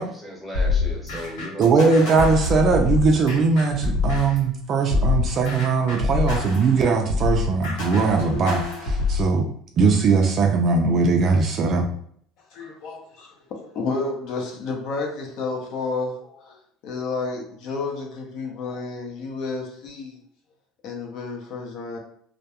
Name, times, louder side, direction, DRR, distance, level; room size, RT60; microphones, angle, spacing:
voice 1, 0.0-2.1, equal, ahead, -3 dB, 0.8 m, -36 dB
sound 1, 0.5-4.5 4.9-9.3, left 4 dB, 90° left, 0.9 m, -25 dB
voice 2, 1.6-9.4 9.8-11.9, right 4 dB, 35° right, 3 dB, 0.3 m, -20 dB
voice 3, 12.5-20.2 20.8-22.0, left 3 dB, 55° left, 1 dB, 0.6 m, -31 dB
2.3 x 2.2 x 2.8 m, 0.62 s
cardioid pair, 145°, 0 cm